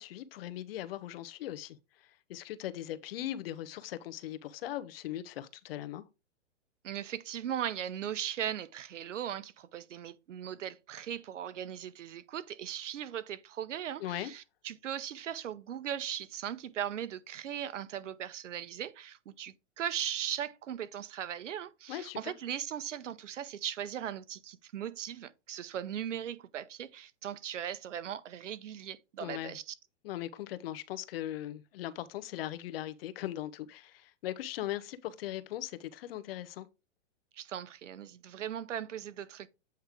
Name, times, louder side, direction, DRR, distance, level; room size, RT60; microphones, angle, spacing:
voice 1, 0.0-6.0 14.0-14.3 21.9-22.3 29.2-29.6 30.0-36.7, left 13 dB, 55° left, 0.8 m, -39 dB
voice 2, 6.8-29.7 37.3-39.5, right 10 dB, 85° right, 0.8 m, -38 dB
8.1 x 3.3 x 4.9 m
hypercardioid pair, 135°, 36 cm